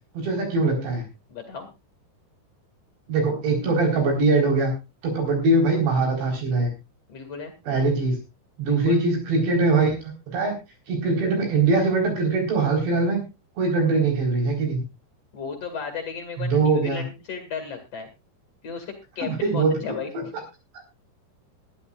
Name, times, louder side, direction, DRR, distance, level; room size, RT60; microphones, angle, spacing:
voice 1, 0.1-1.0 3.1-4.7 5.0-6.7 7.7-8.2 8.6-10.5 10.9-13.2 13.6-14.8 16.4-17.0 19.2-20.2, right 3 dB, 80° right, 2 dB, 6.4 m, -22 dB
voice 2, 1.3-1.7 7.1-7.5 8.7-9.0 15.3-18.1 18.6-20.1, left 6 dB, 45° left, 5 dB, 2.6 m, -34 dB
21.0 x 12.0 x 2.4 m, 0.26 s
omnidirectional pair, 4.9 m